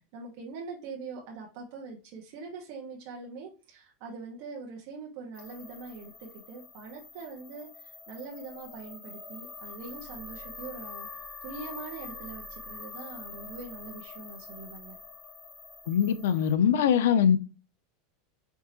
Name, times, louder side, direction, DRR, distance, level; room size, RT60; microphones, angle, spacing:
voice 1, 0.1-11.1 11.4-15.0, right 4 dB, 50° right, 1.0 m, -43 dB
sound 1, 5.3-16.5, left 4 dB, 10° left, 0.4 m, -45 dB
voice 2, 15.9-17.4, left 8 dB, 80° left, 0.5 m, -22 dB
4.6 x 2.8 x 2.7 m
supercardioid pair, 170°, 0 cm